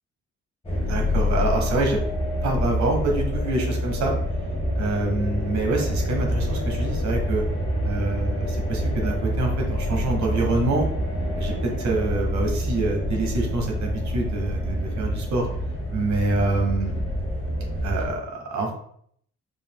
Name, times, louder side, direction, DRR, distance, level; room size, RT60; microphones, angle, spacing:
sound 1, 0.6-18.1, left 1 dB, 20° left, 1.5 m, -27 dB
voice 1, 0.9-2.0 2.4-4.1 4.8-7.4 7.8-10.9 11.4-15.5 15.9-16.9 17.8-18.7, right 2 dB, 70° right, 1 dB, 1.4 m, -26 dB
5.2 x 3.3 x 2.3 m, 0.65 s
cardioid pair, 90°, 30 cm